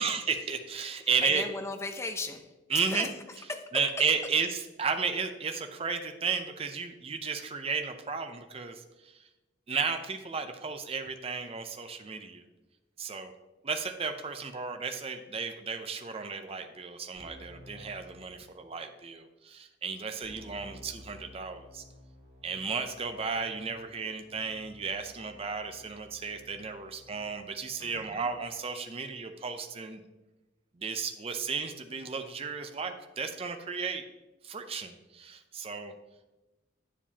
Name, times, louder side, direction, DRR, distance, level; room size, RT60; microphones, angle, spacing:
voice 1, 0.0-1.4 2.7-3.1 3.7-8.8 9.7-12.4 13.0-13.3 13.6-21.8 22.4-30.0 30.8-34.1 34.4-35.9, right 5 dB, 30° right, 6 dB, 0.6 m, -33 dB
voice 2, 1.0-3.7 27.8-28.3, left 3 dB, 15° left, 6 dB, 0.6 m, -38 dB
Keyboard (musical), 17.2-18.8 20.2-28.6, left 1 dB, 55° right, 2.2 m, -54 dB
8.8 x 7.3 x 2.8 m, 1.1 s
head